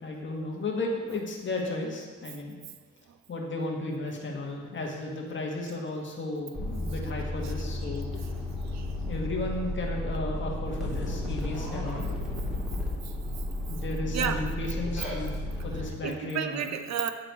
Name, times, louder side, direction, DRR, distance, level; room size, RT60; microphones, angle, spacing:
voice 1, 0.0-2.6 3.3-8.2 9.1-12.0 13.7-16.7, left 2 dB, 40° left, 0 dB, 1.5 m, -34 dB
sound 1, 6.5-15.9, left 1 dB, ahead, 1.9 m, -33 dB
voice 2, 12.1-12.4 14.1-14.4 16.0-17.1, right 8 dB, 60° right, 8 dB, 0.6 m, -32 dB
9.5 x 3.9 x 4.7 m, 1.5 s
cardioid pair, 90°, 30 cm